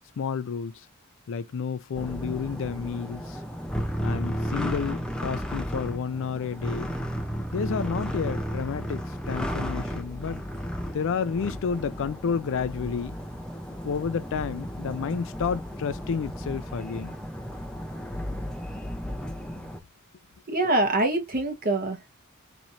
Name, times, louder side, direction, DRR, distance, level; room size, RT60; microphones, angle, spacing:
voice 1, 0.2-0.9 1.3-3.4 4.0-7.0 7.5-10.4 10.9-13.2 13.8-17.1 19.5-19.6, left 6 dB, 60° left, 0.4 m, -30 dB
sound 1, 1.9-19.8, equal, 5° left, 0.6 m, -34 dB
voice 2, 20.5-22.1, right 2 dB, 40° right, 1.1 m, -25 dB
4.2 x 3.0 x 2.5 m
head